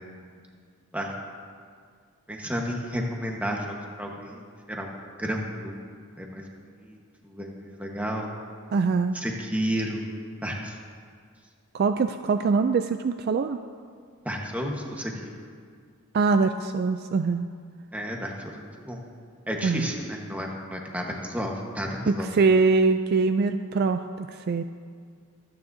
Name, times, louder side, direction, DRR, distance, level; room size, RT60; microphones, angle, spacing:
voice 1, 2.3-4.9 5.2-6.4 6.8-7.0 7.2-8.3 9.1-10.1 10.4-10.8 14.2-15.4 17.9-19.0 19.5-22.3, equal, 5° right, 0 dB, 1.2 m, -32 dB
voice 2, 8.7-9.2 11.7-13.6 16.1-17.5 19.6-19.9 22.1-24.6, right 4 dB, 45° right, 8 dB, 0.3 m, -23 dB
24.5 x 9.6 x 2.7 m, 2.1 s
head